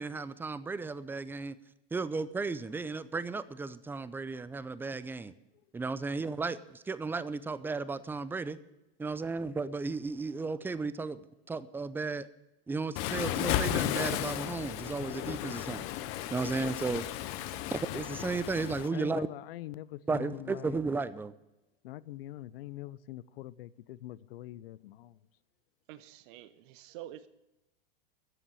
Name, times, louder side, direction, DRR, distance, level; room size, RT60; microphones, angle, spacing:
voice 1, 0.0-1.5 1.9-5.3 5.7-8.6 9.0-11.2 11.5-12.3 12.7-15.9 16.3-17.0 17.7-19.3 20.1-21.3, right 4 dB, 5° right, 0.5 m, -34 dB
Waves surf, 13.0-18.9, left 13 dB, 50° left, 0.9 m, -34 dB
voice 2, 18.9-20.8 21.8-25.2, left 15 dB, 70° left, 0.7 m, -43 dB
voice 3, 25.9-27.3, right 13 dB, 60° right, 0.9 m, -47 dB
13.0 x 7.3 x 9.8 m
hypercardioid pair, 115°, 30 cm